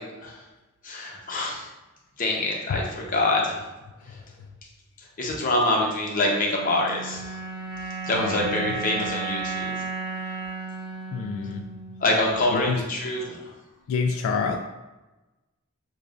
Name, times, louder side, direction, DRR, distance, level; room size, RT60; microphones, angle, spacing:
voice 1, 0.8-1.7 2.2-3.6 5.2-7.2 8.0-9.7 12.0-13.4, left 2 dB, 40° left, -2 dB, 0.8 m, -25 dB
sound 1, 6.4-12.8, right 4 dB, 55° right, 1.0 m, -34 dB
voice 2, 8.1-8.8 11.1-11.6 12.5-12.8 13.9-14.6, left 5 dB, 75° left, 4 dB, 0.3 m, -27 dB
6.7 x 2.3 x 2.4 m, 1.1 s
head